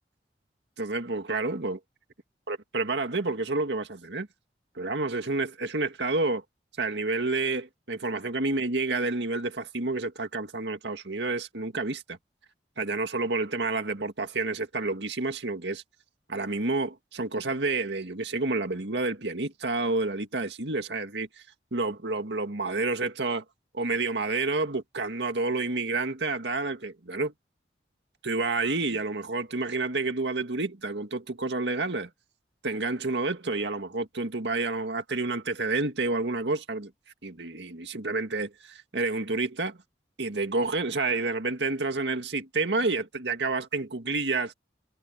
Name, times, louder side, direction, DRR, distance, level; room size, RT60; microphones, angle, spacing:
voice 1, 0.8-1.8 2.5-4.3 4.8-6.4 6.8-12.2 12.8-15.8 16.3-21.3 21.7-23.4 23.7-27.3 28.2-32.1 32.6-36.9 37.2-39.8 40.2-44.5, right 3 dB, 85° right, 2.0 m, -29 dB
head